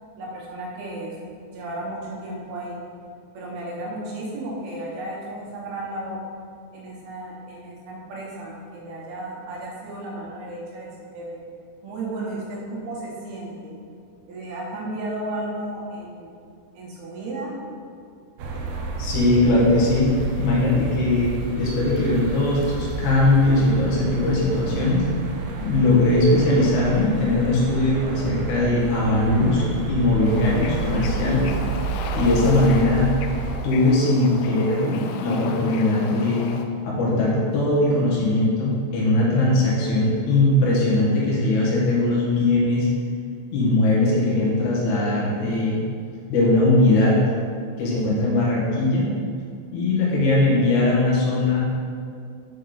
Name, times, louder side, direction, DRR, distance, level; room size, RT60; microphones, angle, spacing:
voice 1, 0.2-1.2 1.5-2.8 3.3-6.2 6.7-11.4 11.8-13.7 14.3-16.3 16.7-17.6, right 1 dB, 70° right, -4 dB, 2.6 m, -34 dB
sound 1, 18.4-33.6, right 3 dB, 90° right, 2.1 m, -30 dB
voice 2, 19.0-25.0 25.6-31.5 32.1-33.1 33.6-36.5 36.8-42.9 43.5-45.8 46.3-47.2 47.8-49.1 49.7-51.6, left 2 dB, 65° left, -6 dB, 2.0 m, -20 dB
Bird / Ocean, 30.2-36.7, left 5 dB, 85° left, 2.4 m, -36 dB
6.6 x 5.3 x 3.9 m, 2.3 s
omnidirectional pair, 5.4 m